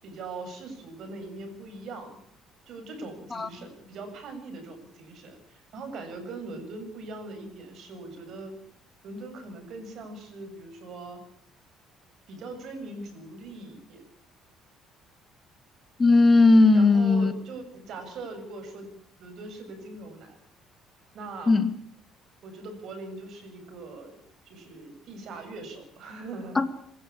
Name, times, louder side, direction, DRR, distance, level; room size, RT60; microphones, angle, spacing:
voice 1, 0.0-2.2 2.7-8.5 9.0-11.2 12.3-14.0 16.7-18.9 19.2-20.4 21.1-21.6 22.4-26.6, right 2 dB, 60° right, 7 dB, 7.7 m, -41 dB
voice 2, 16.0-17.3 21.5-21.7 26.6-26.7, left 3 dB, 30° left, 11 dB, 2.5 m, -18 dB
26.5 x 14.5 x 8.7 m, 0.66 s
hypercardioid pair, 55°, 0 cm